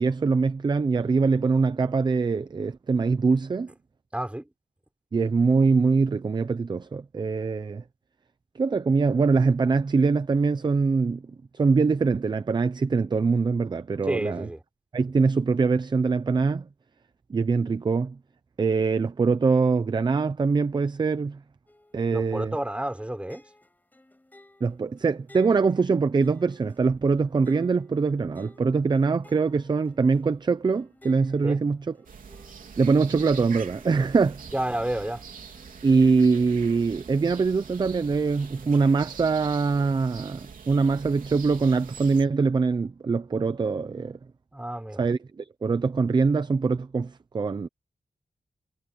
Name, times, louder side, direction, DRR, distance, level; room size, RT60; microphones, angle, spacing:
voice 1, 0.0-3.7 5.1-7.8 8.6-11.2 11.5-14.5 14.9-16.7 17.3-18.2 18.6-21.4 21.9-22.5 24.6-32.0 32.8-34.4 35.8-44.2 45.0-47.7, right 4 dB, 30° right, 0.6 m, -23 dB
voice 2, 4.1-4.5 14.0-14.6 22.1-23.4 31.4-31.6 34.5-35.2 44.5-45.1, right 1 dB, 10° right, 5.0 m, -30 dB
sound 1, 21.7-38.8 39.2-39.7, left 1 dB, 10° left, 6.5 m, -57 dB
sound 2, 32.0-42.2, right 6 dB, 70° right, 3.4 m, -44 dB
wide cardioid pair, 170°, 14 cm